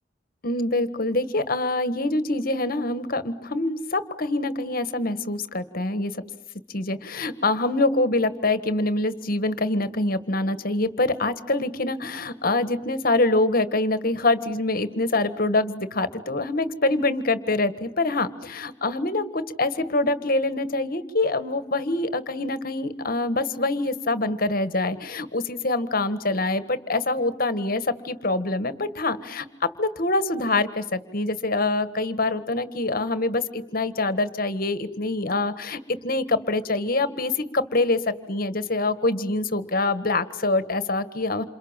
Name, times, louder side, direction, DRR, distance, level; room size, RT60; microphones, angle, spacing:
voice 1, 0.4-6.2 6.7-41.4, left 2 dB, 45° left, 12 dB, 1.6 m, -25 dB
28.5 x 28.0 x 7.4 m, 0.80 s
head